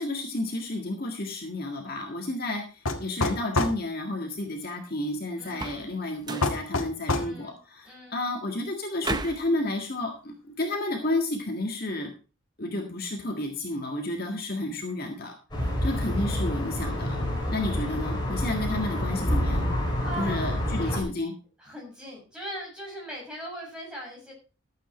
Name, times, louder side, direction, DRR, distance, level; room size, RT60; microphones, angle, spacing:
voice 1, 0.0-12.1 12.6-15.3 15.8-17.2 17.5-19.7 20.2-21.3, left 2 dB, 45° left, 2 dB, 1.8 m, -31 dB
sound 1, 2.9-3.8 6.4-7.3, left 2 dB, 90° left, 1.9 m, -26 dB
voice 2, 5.4-5.8 7.1-7.6 7.8-8.2 20.0-21.0 21.6-24.3, equal, 5° right, -3 dB, 6.9 m, -40 dB
sound 2, 5.5-5.9 6.2-6.6 9.0-9.5, right 2 dB, 20° right, 0.7 m, -33 dB
sound 3, 15.5-21.0, left 1 dB, 20° left, 4.0 m, -28 dB
13.0 x 8.4 x 4.4 m, 0.33 s
head